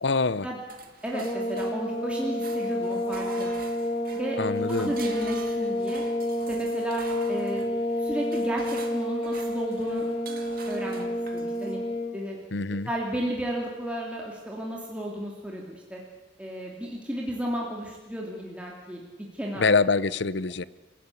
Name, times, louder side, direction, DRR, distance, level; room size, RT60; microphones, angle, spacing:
voice 1, 0.0-0.5 4.4-4.9 12.5-12.9 19.6-20.6, left 4 dB, 65° left, 17 dB, 0.8 m, -25 dB
sound 1, 0.7-2.0 2.3-11.8, right 4 dB, 50° right, 2.3 m, -46 dB
voice 2, 1.0-3.5 4.1-4.4 4.8-6.0 6.5-7.0 7.3-7.7 8.0-10.1 10.7-11.8 12.1-12.4 12.8-16.0 16.4-19.0 19.3-19.7, equal, 5° right, -2 dB, 3.0 m, -33 dB
sound 2, 1.1-12.2, left 1 dB, 30° left, 2.1 m, -29 dB
29.5 x 16.0 x 8.6 m, 1.2 s
head